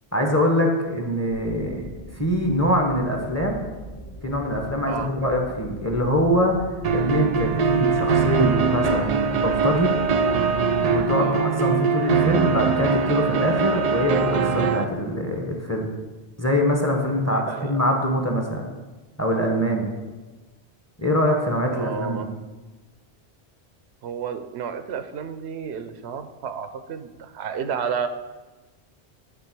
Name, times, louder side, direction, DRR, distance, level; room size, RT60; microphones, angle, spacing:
voice 1, 0.1-1.9 2.2-3.6 4.2-6.6 6.9-9.9 10.8-15.9 16.4-18.7 19.2-19.9 21.0-22.3, equal, 15° left, 2 dB, 0.9 m, -23 dB
sound 1, 1.3-11.1, right 1 dB, 45° left, 1.3 m, -40 dB
sound 2, 6.8-14.9, right 5 dB, 55° right, 0.4 m, -22 dB
voice 2, 17.3-17.8 21.7-22.3 24.0-28.1, right 7 dB, 85° right, 10 dB, 0.9 m, -31 dB
10.0 x 3.7 x 6.0 m, 1.2 s
omnidirectional pair, 1.1 m